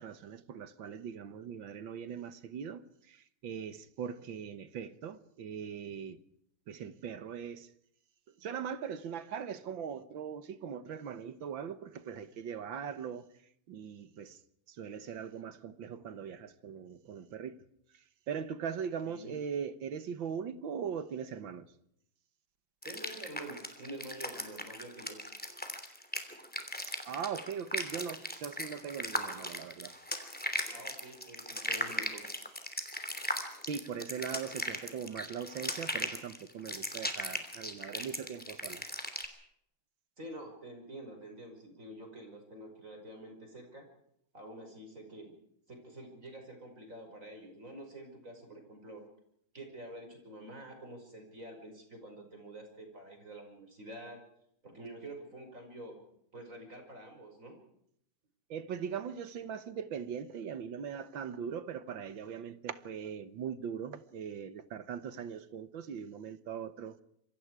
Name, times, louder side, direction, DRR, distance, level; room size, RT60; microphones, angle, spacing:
voice 1, 0.0-6.2 6.7-7.7 8.4-13.3 13.7-14.4 14.7-17.6 17.9-21.7 26.9-29.9 33.6-38.9 58.5-67.0, right 7 dB, 65° right, 1.8 m, -40 dB
voice 2, 19.1-19.4 22.8-25.2 30.7-32.2 40.2-43.9 44.3-45.4 45.7-49.0 49.5-54.2 54.6-56.0 56.3-57.6, right 1 dB, 35° right, 5.9 m, -47 dB
sound 1, 22.8-39.3, equal, 5° left, 2.8 m, -38 dB
27.0 x 23.5 x 4.8 m
omnidirectional pair, 2.4 m